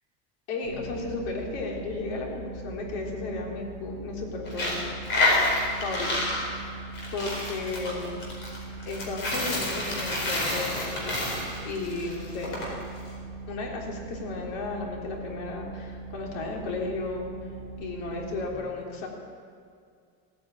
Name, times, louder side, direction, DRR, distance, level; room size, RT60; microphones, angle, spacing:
voice 1, 0.5-4.8 5.8-6.8 7.1-8.1 8.8-11.4 11.6-12.6 13.5-17.5 17.8-19.1, left 3 dB, 85° left, -1 dB, 3.7 m, -34 dB
sound 1, 0.6-18.4, right 3 dB, 10° right, 4.0 m, -41 dB
Coin (dropping), 4.5-12.7, left 2 dB, 40° left, 4.5 m, -29 dB
16.5 x 9.5 x 8.7 m, 2.3 s
cardioid pair, 165°, 30 cm